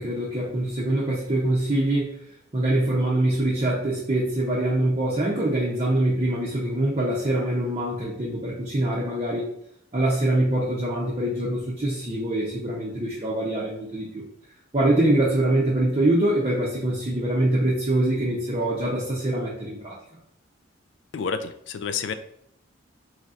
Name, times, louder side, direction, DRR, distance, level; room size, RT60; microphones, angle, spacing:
voice 1, 0.0-2.2 2.5-9.5 9.9-14.2 14.7-20.0, right 1 dB, 30° right, -5 dB, 0.6 m, -24 dB
voice 2, 21.1-22.1, left 6 dB, 65° left, 10 dB, 0.3 m, -29 dB
4.0 x 3.2 x 2.5 m, 0.71 s
head